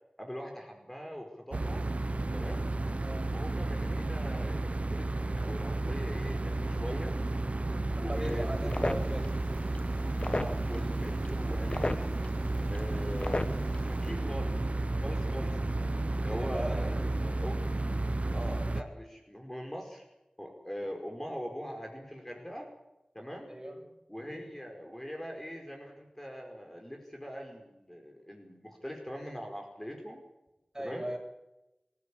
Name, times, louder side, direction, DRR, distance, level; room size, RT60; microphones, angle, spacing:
voice 1, 0.2-1.8 2.3-2.7 3.3-7.2 7.9-9.1 10.4-12.1 12.7-14.6 15.0-15.8 16.1-17.8 18.3-20.0 20.4-22.7 23.1-23.5 24.1-30.2 30.8-31.1, equal, 15° left, 2 dB, 5.0 m, -42 dB
sound 1, 1.5-18.8, right 2 dB, 65° right, 1.2 m, -32 dB
voice 2, 3.0-3.3 8.0-9.3 16.2-16.8 23.5-23.9 30.7-31.2, right 1 dB, 25° right, 3 dB, 7.1 m, -39 dB
sound 2, 8.1-14.1, left 2 dB, 50° left, 1.4 m, -38 dB
26.0 x 15.0 x 8.7 m, 0.95 s
wide cardioid pair, 50°, 2 cm